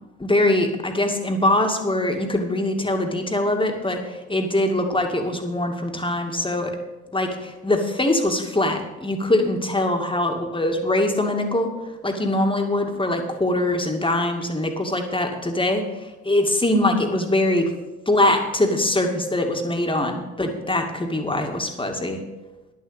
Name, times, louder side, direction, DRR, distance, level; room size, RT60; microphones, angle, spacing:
voice 1, 0.2-6.7 7.1-11.7 12.0-15.8 16.2-17.7 18.1-22.2, left 1 dB, 15° left, 3 dB, 2.3 m, -22 dB
11.0 x 7.1 x 8.2 m, 1.1 s
hypercardioid pair, 50°, 35 cm